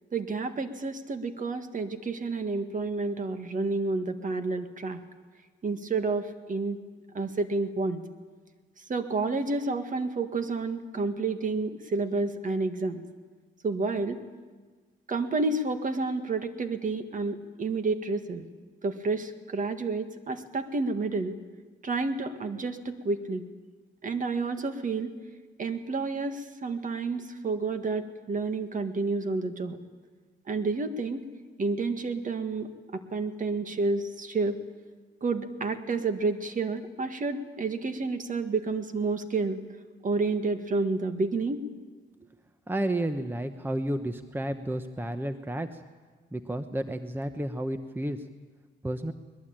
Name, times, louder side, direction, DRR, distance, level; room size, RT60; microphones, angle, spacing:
voice 1, 0.1-5.0 5.6-6.8 7.1-8.0 8.9-13.0 13.6-14.2 15.1-18.4 18.8-21.3 21.8-23.4 24.0-25.1 25.6-29.8 30.5-31.2 31.6-34.6 35.2-39.6 40.0-41.6, right 3 dB, 40° right, 8 dB, 1.9 m, -30 dB
voice 2, 42.7-45.7 46.3-48.2 48.8-49.1, right 1 dB, 10° right, 9 dB, 1.0 m, -31 dB
21.5 x 21.0 x 9.0 m, 1.4 s
cardioid pair, 90°, 20 cm